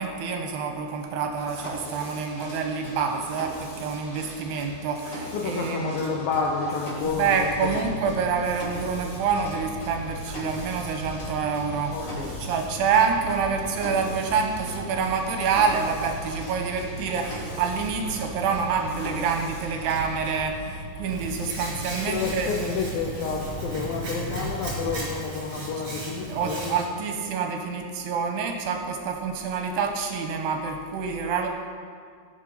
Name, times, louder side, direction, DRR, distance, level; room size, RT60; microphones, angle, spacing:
voice 1, 0.0-6.0 7.2-12.0 12.4-22.5 26.2-31.5, right 5 dB, 75° right, 4 dB, 2.8 m, -27 dB
Mechanisms, 1.4-20.4, equal, 35° left, 1.3 m, -41 dB
voice 2, 5.3-7.8 11.9-12.4 22.1-26.8, left 4 dB, 75° left, 0 dB, 2.2 m, -30 dB
sound 1, 7.0-24.9, equal, 55° left, 4.9 m, -38 dB
Hands, 21.0-26.8, right 1 dB, 30° right, 3.6 m, -36 dB
16.0 x 7.3 x 5.5 m, 2.1 s
omnidirectional pair, 5.1 m